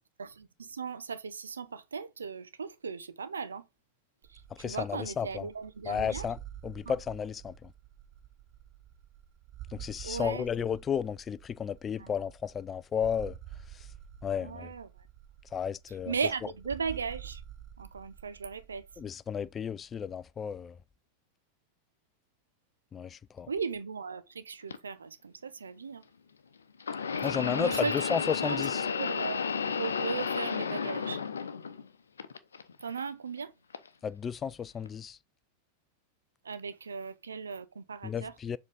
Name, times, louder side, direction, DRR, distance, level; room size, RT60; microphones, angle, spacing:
voice 1, 0.2-3.6 4.3-6.3 6.9-7.0 10.0-10.5 12.0-12.1 14.4-15.1 16.1-17.4 17.8-18.9 23.5-26.0 27.2-27.9 28.4-31.2 32.8-33.5 36.4-38.3, right 5 dB, 70° right, 0.7 m, -37 dB
sound 1, 4.2-19.1, right 11 dB, 35° right, 0.6 m, -49 dB
voice 2, 4.6-5.5 5.9-6.4 6.6-7.7 9.7-13.4 13.7-13.9 14.2-14.7 15.5-16.1 19.0-20.8 22.9-23.5 27.2-27.8 28.1-28.9 34.0-35.2 38.0-38.6, left 7 dB, 20° left, 0.3 m, -33 dB
sound 2, 24.7-24.8 26.8-31.9 32.2-33.0 33.7-33.9 34.9-35.0, left 6 dB, 70° left, 0.7 m, -32 dB
7.2 x 3.8 x 3.8 m
figure-of-eight pair, 90°, 0 cm